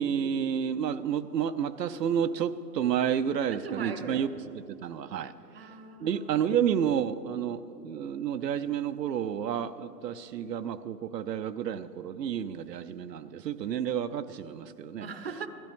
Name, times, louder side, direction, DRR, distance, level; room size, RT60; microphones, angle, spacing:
voice 1, 0.0-4.3 4.5-5.3 6.0-15.1, right 8 dB, 85° right, 10 dB, 0.7 m, -30 dB
voice 2, 3.6-4.2 5.5-6.5 15.0-15.5, right 5 dB, 40° right, 8 dB, 0.8 m, -39 dB
16.5 x 13.5 x 3.5 m, 2.8 s
hypercardioid pair, 175°, 48 cm